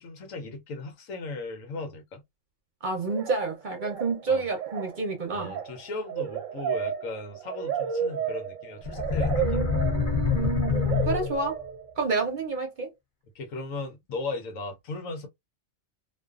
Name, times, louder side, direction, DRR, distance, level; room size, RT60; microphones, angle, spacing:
voice 1, 0.0-2.2 4.3-4.4 5.3-9.6 13.3-15.3, left 3 dB, 85° left, 1.2 m, -37 dB
voice 2, 2.8-5.5 9.4-11.6 12.0-12.9, right 4 dB, 45° right, 0.7 m, -29 dB
sound 1, 3.1-3.5 3.8-4.2 4.5-12.1, right 8 dB, 85° right, 1.0 m, -33 dB
sound 2, 8.8-11.6, left 6 dB, 40° left, 0.6 m, -26 dB
2.5 x 2.4 x 2.3 m
omnidirectional pair, 1.4 m